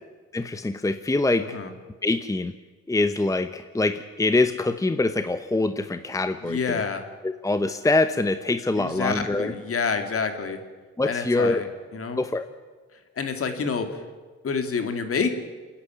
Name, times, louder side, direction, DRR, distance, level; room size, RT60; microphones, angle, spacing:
voice 1, 0.3-1.6 2.0-2.6 2.9-6.8 7.2-9.5 11.0-11.6 12.2-12.5, left 2 dB, 10° left, 10 dB, 0.8 m, -24 dB
voice 2, 6.4-7.0 8.8-10.6 11.1-11.6 11.9-12.2 13.2-14.0 14.4-15.3, left 5 dB, 50° left, 7 dB, 2.8 m, -27 dB
28.5 x 10.5 x 9.6 m, 1.4 s
cardioid pair, 90°, 30 cm